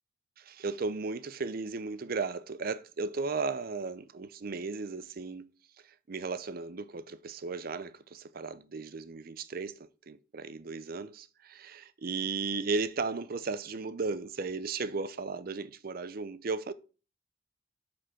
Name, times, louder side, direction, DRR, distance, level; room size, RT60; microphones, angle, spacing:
voice 1, 0.4-5.5 5.8-16.7, right 4 dB, 50° right, 0.6 m, -35 dB
7.5 x 4.4 x 4.4 m
head